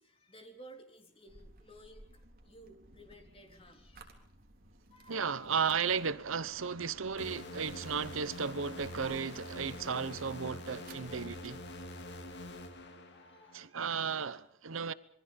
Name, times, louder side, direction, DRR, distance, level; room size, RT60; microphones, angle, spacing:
voice 1, 0.0-4.2 4.9-5.5 10.8-11.4 13.1-13.7, right 1 dB, 25° left, 3.6 m, -56 dB
sound 1, 1.3-12.7, right 1 dB, 45° right, 3.6 m, -58 dB
voice 2, 5.1-11.6 13.5-14.9, right 6 dB, 70° right, 0.9 m, -34 dB
sound 2, 7.2-13.7, left 1 dB, 55° left, 2.6 m, -46 dB
27.0 x 22.5 x 5.3 m
head